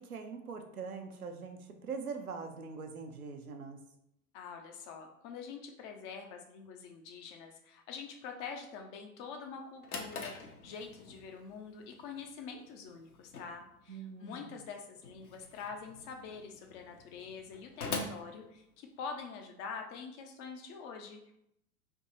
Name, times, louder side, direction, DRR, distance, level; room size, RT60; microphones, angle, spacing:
voice 1, 0.1-3.8 13.9-14.5, right 5 dB, 80° right, 5 dB, 0.7 m, -42 dB
voice 2, 4.3-21.3, left 5 dB, 30° left, 3 dB, 0.4 m, -45 dB
Drawer open or close, 9.5-19.2, left 3 dB, 80° left, 0.8 m, -45 dB
3.5 x 2.9 x 4.0 m, 0.79 s
figure-of-eight pair, 85°, 43 cm